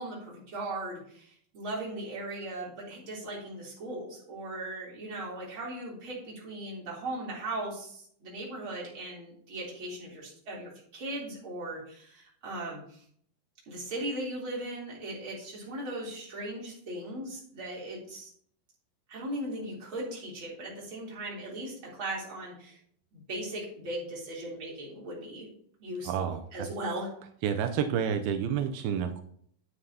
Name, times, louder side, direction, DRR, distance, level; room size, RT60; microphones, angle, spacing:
voice 1, 0.0-13.0 13.7-18.3 19.1-22.8 23.1-25.5 25.8-27.1, right 1 dB, 35° right, -5 dB, 3.9 m, -38 dB
voice 2, 26.1-26.4 27.4-29.2, right 8 dB, 85° right, 7 dB, 2.6 m, -29 dB
11.0 x 9.6 x 2.8 m, 0.62 s
omnidirectional pair, 4.2 m